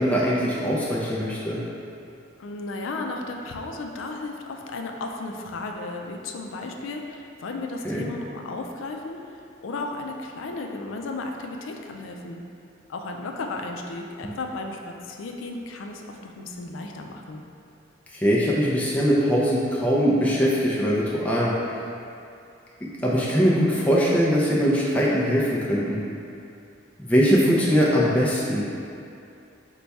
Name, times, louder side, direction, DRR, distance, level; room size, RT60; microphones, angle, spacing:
voice 1, 0.0-1.6 7.8-8.1 18.1-21.5 23.0-26.0 27.0-28.6, equal, 5° left, -7 dB, 0.4 m, -21 dB
voice 2, 2.4-12.4 12.9-17.4, left 2 dB, 90° left, 2 dB, 0.4 m, -34 dB
4.5 x 2.2 x 4.0 m, 2.5 s
head